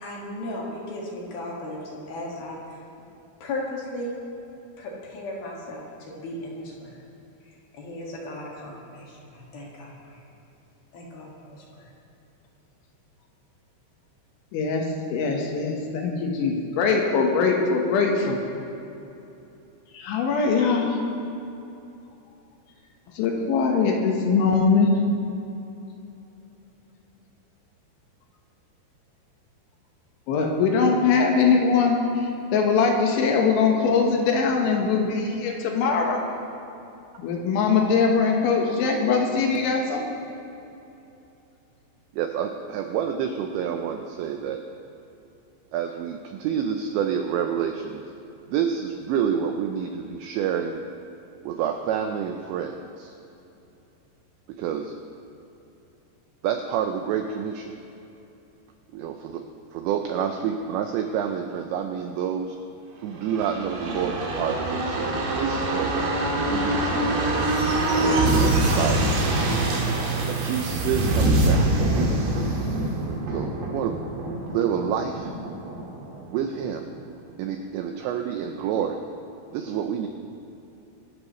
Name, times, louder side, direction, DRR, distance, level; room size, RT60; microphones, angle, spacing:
voice 1, 0.0-2.8 3.4-4.1 4.8-7.0 7.7-10.2 10.9-11.9, left 1 dB, 55° left, -3 dB, 3.2 m, -36 dB
voice 2, 14.5-18.4 19.9-21.0 23.1-24.9 30.3-36.2 37.2-40.0, left 5 dB, 75° left, 1 dB, 3.5 m, -22 dB
voice 3, 42.1-44.6 45.7-48.0 48.5-50.8 51.4-53.1 54.6-54.9 56.4-57.7 58.9-59.4 59.7-62.6 63.0-65.9 66.5-67.2 68.0-69.4 70.3-71.9 73.3-74.0 74.4-75.3 76.3-76.9 77.4-79.0 79.5-80.1, right 8 dB, 85° right, 5 dB, 2.5 m, -28 dB
sound 1, 63.2-76.7 77.0-77.1, right 2 dB, 60° right, 3.5 m, -24 dB
24.0 x 12.0 x 3.1 m, 2.9 s
omnidirectional pair, 5.9 m